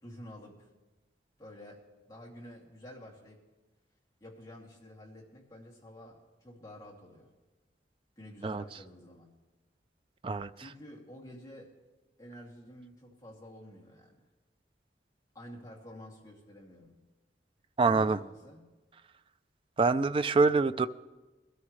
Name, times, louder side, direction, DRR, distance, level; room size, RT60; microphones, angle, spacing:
voice 1, 0.0-0.7 1.4-3.4 4.2-7.3 8.2-9.4 10.5-11.8 12.2-14.2 15.3-17.0 17.9-18.7, equal, 20° left, -4 dB, 2.4 m, -50 dB
voice 2, 17.8-18.2 19.8-20.9, right 4 dB, 30° right, 12 dB, 0.3 m, -25 dB
21.5 x 13.0 x 3.2 m, 1.2 s
head